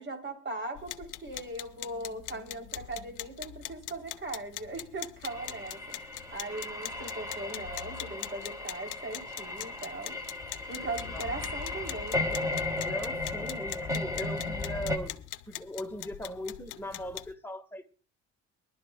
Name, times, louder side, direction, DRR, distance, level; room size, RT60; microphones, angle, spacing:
voice 1, 0.0-6.0 6.3-10.1 10.7-12.4, right 2 dB, 40° right, 5 dB, 3.2 m, -39 dB
sound 1, 0.8-17.3, left 15 dB, 90° left, 0.7 m, -43 dB
sound 2, 5.2-15.0, left 2 dB, 10° right, 2.4 m, -36 dB
Speech / Wind, 10.4-15.3, left 7 dB, 45° left, 1.1 m, -43 dB
voice 2, 12.8-17.9, equal, 5° left, 4 dB, 1.5 m, -39 dB
23.5 x 11.5 x 2.2 m, 0.36 s
cardioid pair, 90°, 30 cm